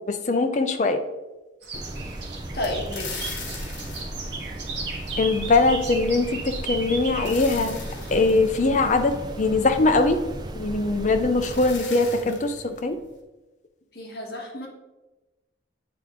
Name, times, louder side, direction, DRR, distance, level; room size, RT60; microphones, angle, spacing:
voice 1, 0.1-1.0 5.2-7.8 8.1-10.2 10.5-13.0, left 3 dB, 40° left, 6 dB, 0.5 m, -22 dB
sound 1, 1.6-8.3, right 4 dB, 75° right, 1.3 m, -37 dB
sound 2, 1.7-11.7, right 1 dB, 25° right, 0.4 m, -36 dB
voice 2, 2.5-3.3 13.9-14.7, left 1 dB, 55° left, 0 dB, 1.2 m, -31 dB
sound 3, 2.6-5.3 6.8-9.9 11.0-11.1 11.4-13.2, left 4 dB, 75° left, 1.2 m, -40 dB
7.9 x 3.4 x 3.6 m, 1.1 s
head